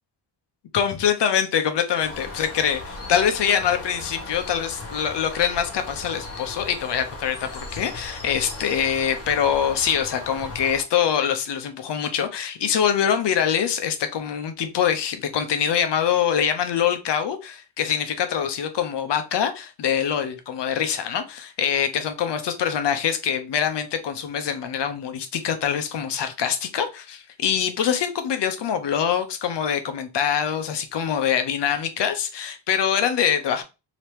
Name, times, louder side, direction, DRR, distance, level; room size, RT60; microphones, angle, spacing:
voice 1, 0.7-2.8 3.1-33.6, left 8 dB, 75° left, 0.8 m, -24 dB
Bird, 2.0-10.8, left 2 dB, 35° left, 1.2 m, -37 dB
2.9 x 2.9 x 3.3 m
cardioid pair, 95°, 42 cm